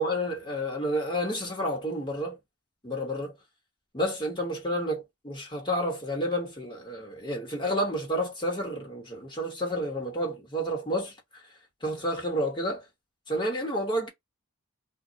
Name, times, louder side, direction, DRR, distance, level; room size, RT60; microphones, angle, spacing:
voice 1, 0.0-2.4 2.8-3.3 3.9-11.4 11.8-12.8 13.3-14.1, equal, 20° left, 1.1 m, -30 dB
2.2 x 2.1 x 3.8 m
head